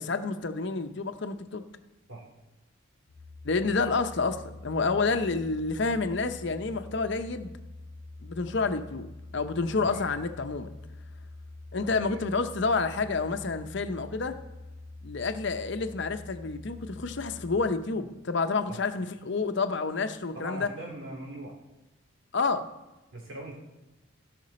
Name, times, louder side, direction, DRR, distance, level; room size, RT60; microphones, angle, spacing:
voice 1, 0.0-1.6 3.4-7.5 8.2-9.1 9.3-10.7 11.7-14.4 15.0-20.7 22.3-22.7, left 4 dB, 60° left, 8 dB, 0.7 m, -29 dB
sound 1, 3.1-17.6, left 2 dB, 30° right, 4.1 m, -45 dB
voice 2, 20.3-21.5 23.1-23.6, right 1 dB, 70° right, -1 dB, 3.3 m, -41 dB
16.0 x 5.9 x 4.3 m, 1.0 s
head